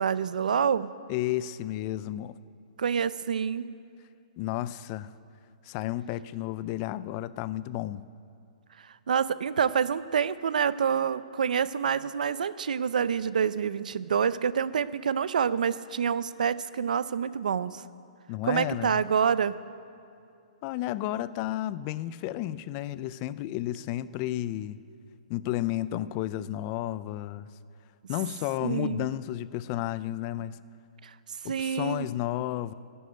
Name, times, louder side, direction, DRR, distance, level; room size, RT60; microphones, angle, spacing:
voice 1, 0.0-0.9 2.8-3.7 9.1-17.8 18.5-19.6 28.6-29.1 31.0-31.1 31.4-32.1, right 7 dB, 85° right, 16 dB, 0.5 m, -27 dB
voice 2, 1.1-2.4 4.4-5.1 5.6-8.0 18.3-19.0 20.6-24.8 25.3-27.5 28.1-30.6 31.4-32.7, left 14 dB, 30° left, 16 dB, 0.3 m, -32 dB
11.0 x 7.9 x 9.4 m, 2.6 s
hypercardioid pair, 160°, 4 cm